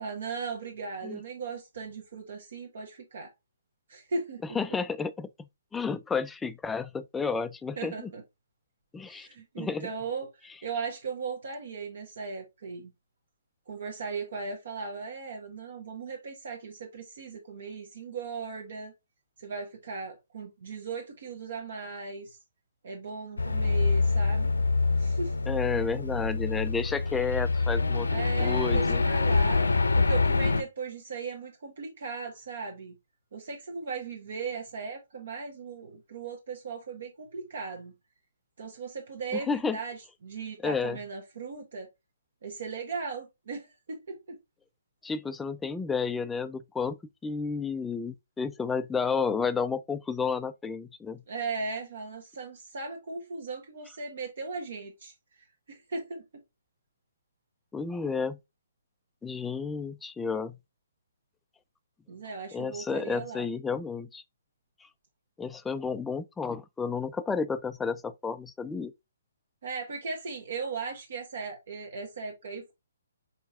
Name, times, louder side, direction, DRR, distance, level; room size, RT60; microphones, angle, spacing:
voice 1, 0.0-3.3 3.9-4.4 7.8-8.2 9.1-12.9 13.7-18.9 19.4-22.4 22.8-24.5 25.0-25.3 28.1-32.9 33.3-37.9 38.6-41.9 42.4-44.4 51.3-55.1 55.7-56.2 62.1-63.5 69.6-72.7, right 4 dB, 55° right, 1.1 m, -37 dB
voice 2, 4.5-8.1 8.9-9.3 9.6-9.9 25.5-28.1 28.4-29.0 39.3-39.8 40.6-41.0 45.0-51.2 57.7-58.4 59.2-60.6 62.5-64.2 64.8-64.9 65.4-68.9, left 5 dB, 10° left, 0.3 m, -31 dB
sound 1, 23.4-30.6, left 3 dB, 75° left, 0.7 m, -25 dB
4.5 x 4.4 x 2.4 m
figure-of-eight pair, 130°, 0 cm